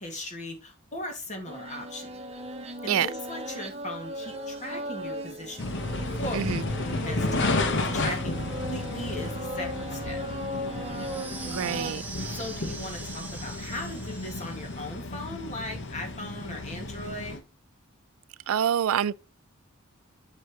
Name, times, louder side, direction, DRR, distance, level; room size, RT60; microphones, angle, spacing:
voice 1, 0.0-2.1 2.6-6.5 7.0-10.2 12.3-17.4, left 1 dB, 35° left, 2.2 m, -38 dB
sound 1, 1.5-11.9, equal, 30° right, 1.1 m, -37 dB
sound 2, 5.6-17.4, left 2 dB, 60° left, 1.0 m, -32 dB
sound 3, 10.9-14.9, right 4 dB, 10° right, 1.3 m, -42 dB
voice 2, 11.4-12.0 18.5-19.1, right 9 dB, 80° right, 0.4 m, -26 dB
7.9 x 6.6 x 3.1 m
head